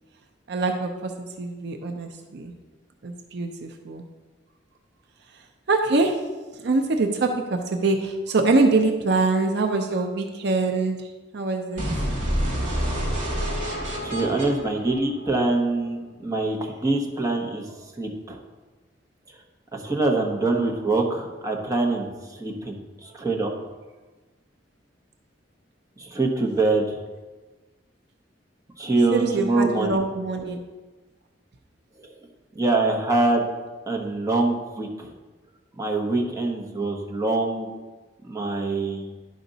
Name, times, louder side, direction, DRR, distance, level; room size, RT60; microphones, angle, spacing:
voice 1, 0.5-2.5 3.0-4.0 5.7-6.3 6.6-11.9 29.1-30.6, right 3 dB, 65° right, 4 dB, 0.6 m, -24 dB
sound 1, 11.8-15.7, equal, 45° right, 2.4 m, -28 dB
voice 2, 14.0-18.4 19.7-22.1 22.4-23.5 26.0-27.0 28.8-30.0 32.0-32.1 32.5-33.5 33.9-35.1 35.8-37.7 38.2-39.1, right 2 dB, 20° right, -1 dB, 1.0 m, -24 dB
11.0 x 5.1 x 4.0 m, 1.3 s
head